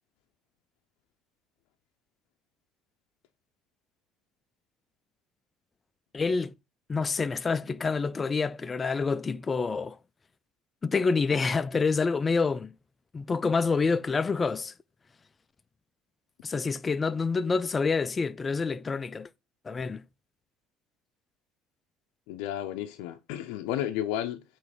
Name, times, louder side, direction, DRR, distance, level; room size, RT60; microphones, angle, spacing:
voice 1, 6.1-6.5 6.9-10.0 10.8-12.7 13.1-14.7 16.4-19.3 19.6-20.0, left 4 dB, 25° left, 0.4 m, -27 dB
voice 2, 22.3-24.4, left 12 dB, 85° left, 0.6 m, -32 dB
8.5 x 3.2 x 4.9 m
cardioid pair, 110°, 0 cm